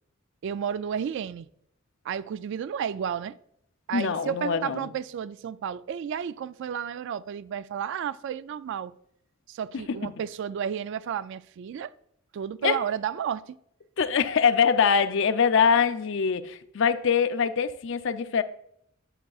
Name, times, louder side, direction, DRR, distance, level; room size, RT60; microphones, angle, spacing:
voice 1, 0.4-1.5 2.0-3.4 3.9-8.9 9.5-11.9 12.3-13.6, right 8 dB, 65° right, 0.3 m, -32 dB
voice 2, 3.9-4.9 9.9-10.1 12.6-12.8 14.0-18.4, left 6 dB, 65° left, 0.5 m, -23 dB
11.0 x 7.6 x 2.4 m
head